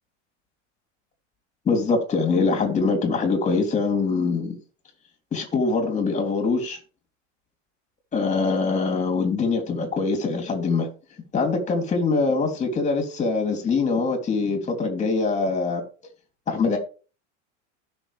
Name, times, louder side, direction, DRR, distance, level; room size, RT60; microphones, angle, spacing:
voice 1, 1.6-4.6 5.3-6.8 8.1-10.9 11.3-15.8 16.5-16.8, left 4 dB, 20° left, 3.2 m, -23 dB
16.0 x 6.5 x 3.5 m
supercardioid pair, 150°, 36 cm